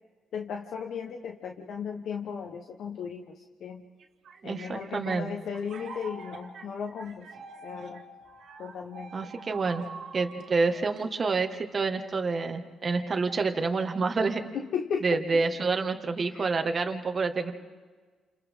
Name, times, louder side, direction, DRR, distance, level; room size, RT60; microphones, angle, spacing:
voice 1, 0.3-3.8 4.4-7.3 7.6-8.0 8.6-9.1 14.5-15.4 16.3-16.5, left 6 dB, 70° left, 3 dB, 1.3 m, -36 dB
sound 1, 4.0-11.5, right 4 dB, 65° right, 2.3 m, -46 dB
voice 2, 4.4-5.3 9.1-9.8 10.1-14.4 15.0-17.5, right 4 dB, 40° right, 5 dB, 1.9 m, -28 dB
29.5 x 28.5 x 3.9 m, 1.4 s
cardioid pair, 90°, 0 cm